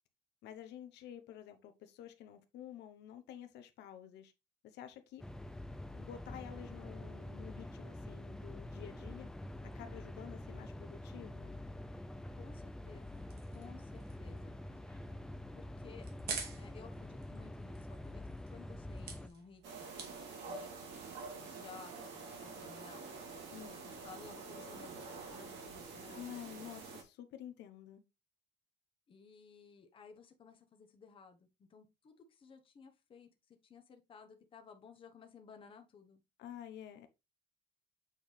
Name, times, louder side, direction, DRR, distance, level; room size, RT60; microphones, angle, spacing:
voice 1, 0.4-4.3 4.6-5.2 5.9-9.3 9.6-11.6 23.5-23.8 26.1-28.0 36.4-37.1, left 10 dB, 80° left, 0.9 m, -50 dB
sound 1, 5.2-19.3, left 1 dB, 5° left, 0.4 m, -46 dB
voice 2, 12.3-13.2 13.5-14.6 15.5-16.1 16.5-18.2 18.5-20.0 20.5-20.7 21.3-23.1 23.8-26.3 29.1-36.2, left 5 dB, 30° left, 1.0 m, -57 dB
sound 2, 12.8-21.4, right 5 dB, 65° right, 2.1 m, -50 dB
sound 3, 19.6-27.0, right 4 dB, 90° right, 2.3 m, -47 dB
7.5 x 4.6 x 3.3 m
cardioid pair, 170°, 18 cm